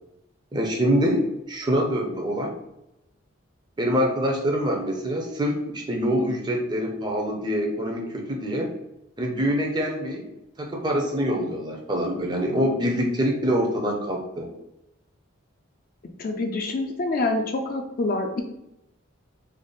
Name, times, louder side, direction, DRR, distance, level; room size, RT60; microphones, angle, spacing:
voice 1, 0.5-2.5 3.8-8.7 9.2-10.2 10.6-14.5, equal, 20° right, 1 dB, 0.5 m, -25 dB
voice 2, 16.2-18.4, left 2 dB, 45° left, 4 dB, 0.4 m, -26 dB
3.3 x 2.0 x 3.8 m, 0.86 s
head